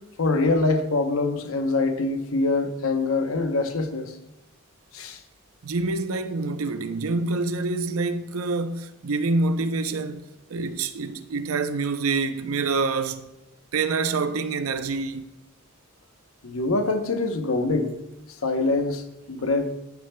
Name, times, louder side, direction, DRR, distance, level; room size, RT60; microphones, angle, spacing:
voice 1, 0.2-4.1 4.9-5.2 16.4-17.9 18.4-19.7, left 3 dB, 85° left, 0.9 m, -24 dB
voice 2, 5.6-13.3 13.7-15.3, right 3 dB, 90° right, 0.6 m, -26 dB
14.5 x 6.5 x 2.2 m
head